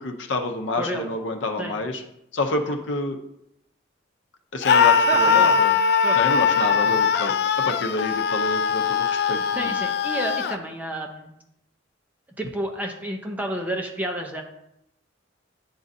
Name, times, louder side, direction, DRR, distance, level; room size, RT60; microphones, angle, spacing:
voice 1, 0.0-2.0 2.3-3.2 4.5-5.8 6.1-7.3 7.6-9.7, left 2 dB, 70° left, 4 dB, 0.7 m, -28 dB
voice 2, 0.8-1.1 1.6-1.8 5.1-5.6 6.0-7.0 9.5-11.3 12.4-14.4, right 1 dB, 10° right, 2 dB, 0.6 m, -31 dB
Screaming, 4.6-10.6, left 6 dB, 55° left, 0.3 m, -21 dB
9.7 x 3.8 x 2.7 m, 0.81 s
head